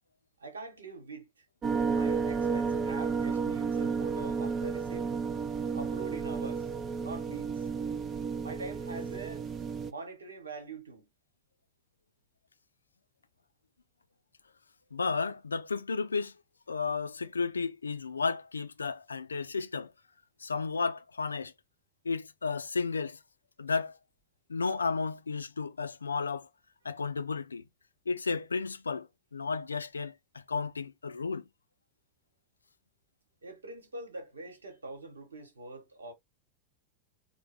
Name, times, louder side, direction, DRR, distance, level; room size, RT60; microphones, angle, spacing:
voice 1, 0.4-1.4 1.9-5.1 5.7-6.7 7.0-7.7 8.4-9.5 9.9-11.1 33.4-36.1, right 3 dB, 75° right, 1.2 m, -44 dB
sound 1, 1.6-9.9, right 5 dB, 25° right, 0.4 m, -32 dB
voice 2, 14.9-16.3 16.7-19.9 20.4-21.5 22.0-23.2 23.6-23.9 24.5-26.5 26.8-27.7 28.1-31.5, left 4 dB, 75° left, 0.4 m, -33 dB
3.9 x 2.2 x 3.5 m
figure-of-eight pair, 90°, 0 cm